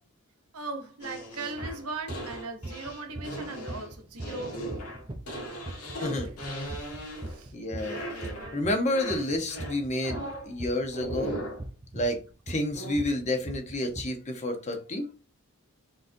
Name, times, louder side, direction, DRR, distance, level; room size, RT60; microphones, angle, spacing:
voice 1, 0.5-4.6 6.0-6.3 7.3-7.5, right 3 dB, 85° right, 0.9 m, -38 dB
sound 1, 1.0-7.5 7.8-8.6 8.9-10.5 10.9-11.6 12.7-12.9, right 1 dB, 85° left, 1.5 m, -38 dB
sound 2, 1.6-1.7 2.1-2.4 2.6-8.9 9.1-14.0, right 2 dB, 20° right, 0.5 m, -39 dB
voice 2, 6.0-6.3 7.5-8.0 8.5-11.4 11.9-12.2 12.5-15.1, left 1 dB, 30° left, 0.8 m, -30 dB
4.0 x 3.7 x 2.6 m
head